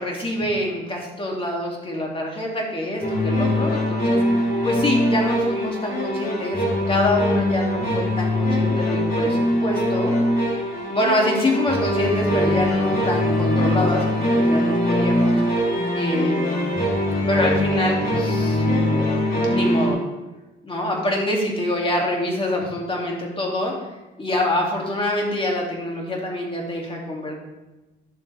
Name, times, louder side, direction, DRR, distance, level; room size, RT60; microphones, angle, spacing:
voice 1, 0.0-10.2 10.9-15.4 15.9-16.7 17.3-18.7 19.5-20.0 20.6-23.7 24.2-27.4, left 1 dB, 25° left, -1 dB, 2.6 m, -25 dB
sound 1, 3.0-19.9, left 1 dB, 45° left, 3.6 m, -22 dB
11.0 x 7.4 x 3.5 m, 1.1 s
cardioid pair, 90°, 20 cm